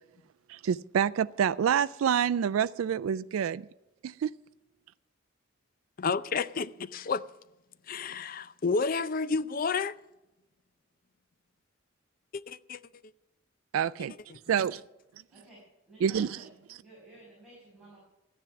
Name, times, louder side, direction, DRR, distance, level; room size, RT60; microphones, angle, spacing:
voice 1, 0.5-3.7 4.0-4.3 13.7-14.1 14.5-14.8 16.0-16.3, right 8 dB, 90° right, 0.3 m, -27 dB
voice 2, 6.0-7.3 7.9-9.9 12.3-12.8, left 4 dB, 45° left, 0.5 m, -30 dB
voice 3, 15.3-16.5 16.8-18.0, right 1 dB, ahead, 5.7 m, -54 dB
13.5 x 10.0 x 5.8 m
head